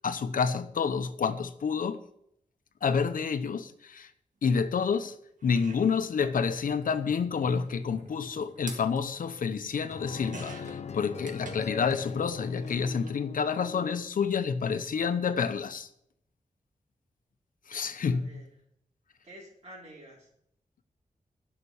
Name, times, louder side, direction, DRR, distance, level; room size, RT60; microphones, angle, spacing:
voice 1, 0.0-2.0 2.8-4.1 4.4-5.1 5.4-15.9 17.7-18.4, left 6 dB, 90° left, 0.9 m, -29 dB
sound 1, 4.9-5.0 5.4-12.1 12.4-13.2 14.2-14.4 14.6-14.7, right 3 dB, 70° right, 2.2 m, -49 dB
sound 2, 9.9-14.1, left 6 dB, 55° left, 0.7 m, -40 dB
voice 2, 18.0-18.5 19.2-20.3, right 1 dB, 50° right, 4.1 m, -49 dB
11.5 x 6.1 x 8.3 m
wide cardioid pair, 140°, 14 cm